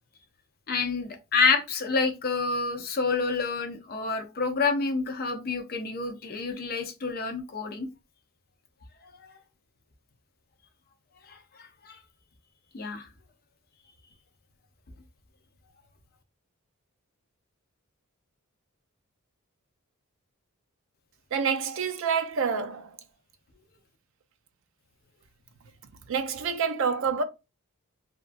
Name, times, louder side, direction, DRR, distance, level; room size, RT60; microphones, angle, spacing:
voice 1, 0.7-7.9 9.0-9.3 11.3-12.0 12.7-13.1, left 4 dB, 45° left, 0.5 m, -28 dB
voice 2, 21.3-23.0 25.9-27.2, right 6 dB, 60° right, 0.4 m, -28 dB
2.9 x 2.3 x 2.5 m
head